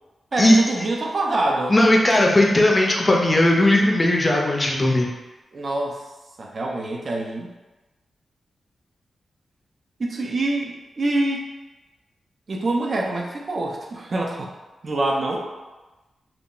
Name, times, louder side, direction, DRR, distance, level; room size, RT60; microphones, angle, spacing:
voice 1, 0.3-1.8 5.5-6.0 6.4-7.5 10.0-11.5 12.5-14.5 14.8-15.5, right 2 dB, 45° right, 0 dB, 0.4 m, -25 dB
voice 2, 1.7-5.1, left 1 dB, 25° left, -1 dB, 0.4 m, -17 dB
2.2 x 2.0 x 3.7 m, 1.1 s
wide cardioid pair, 115°, 0 cm